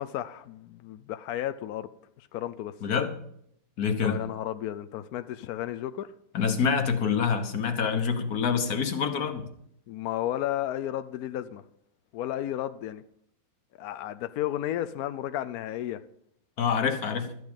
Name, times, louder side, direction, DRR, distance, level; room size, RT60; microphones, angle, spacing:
voice 1, 0.0-1.9 2.2-2.7 4.0-6.1 9.9-11.6 12.1-13.0 13.8-16.0, left 12 dB, 75° left, 10 dB, 0.8 m, -33 dB
voice 2, 2.8-3.2 3.8-4.2 6.3-9.4 16.6-17.3, left 6 dB, 50° left, 7 dB, 1.6 m, -26 dB
13.0 x 9.7 x 5.2 m, 0.71 s
omnidirectional pair, 2.2 m